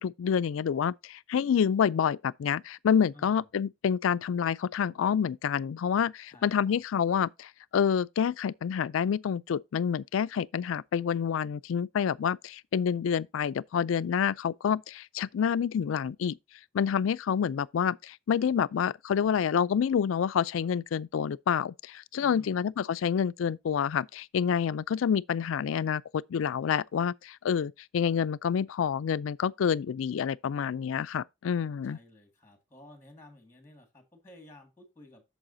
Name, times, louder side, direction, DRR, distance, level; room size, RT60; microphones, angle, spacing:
voice 1, 0.0-16.4 16.7-32.0, left 7 dB, 80° left, 0.3 m, -28 dB
voice 2, 3.1-3.5 6.3-6.8 22.2-22.7 31.8-35.2, left 1 dB, 15° left, 1.9 m, -54 dB
8.8 x 6.8 x 2.6 m
head